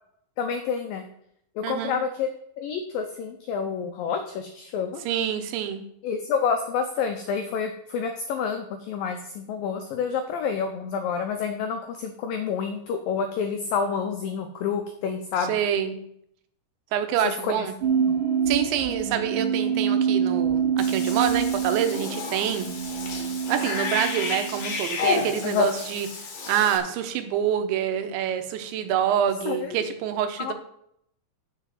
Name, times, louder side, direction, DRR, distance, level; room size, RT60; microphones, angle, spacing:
voice 1, 0.4-1.1 1.6-2.3 2.6-5.0 6.0-15.6 17.4-17.7 18.1-18.2 25.4-25.7 29.5-29.8 30.4-30.5, left 6 dB, 90° left, 6 dB, 2.0 m, -28 dB
voice 2, 1.6-2.0 5.1-5.8 15.5-16.0 16.9-17.7 18.5-22.7 23.5-26.1 26.5-30.5, right 9 dB, 85° right, 8 dB, 3.3 m, -26 dB
sound 1, 17.8-24.8, right 7 dB, 60° right, 2.5 m, -26 dB
Cat / Bathtub (filling or washing), 20.8-26.8, left 4 dB, 55° left, 2.1 m, -31 dB
7.1 x 6.7 x 7.5 m, 0.72 s
omnidirectional pair, 5.1 m